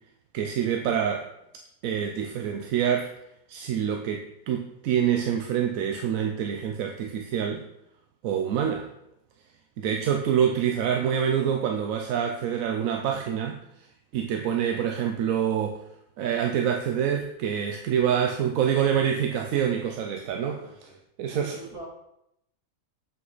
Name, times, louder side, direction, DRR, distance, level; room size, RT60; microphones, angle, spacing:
voice 1, 0.3-1.3 1.8-3.1 3.5-7.6 8.2-8.9 9.8-13.6 14.1-15.8 16.2-20.6 21.2-21.6, right 8 dB, 70° right, 4 dB, 1.0 m, -26 dB
voice 2, 18.0-18.9 20.2-21.0 21.3-21.8, right 2 dB, 50° right, -7 dB, 3.6 m, -45 dB
7.7 x 5.6 x 3.9 m, 0.81 s
omnidirectional pair, 1.6 m